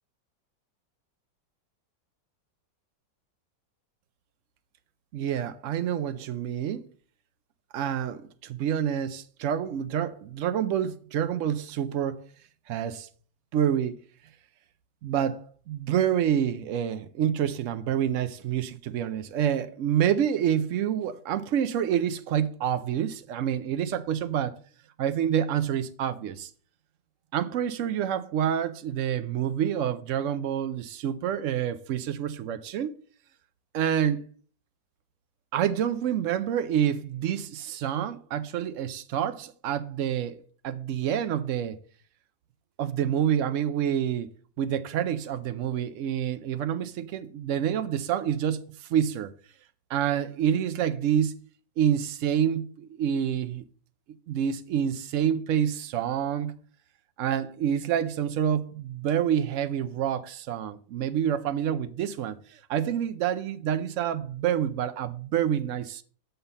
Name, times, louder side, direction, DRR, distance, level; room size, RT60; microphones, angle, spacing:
voice 1, 5.1-6.9 7.7-12.3 12.7-13.1 13.5-14.0 15.0-24.6 25.0-26.5 27.3-32.9 33.7-34.3 35.5-41.8 42.8-44.3 44.6-49.3 49.9-51.3 51.8-53.6 54.3-56.5 57.2-66.0, right 9 dB, 85° right, 0.6 m, -27 dB
6.9 x 5.7 x 5.4 m
omnidirectional pair, 1.9 m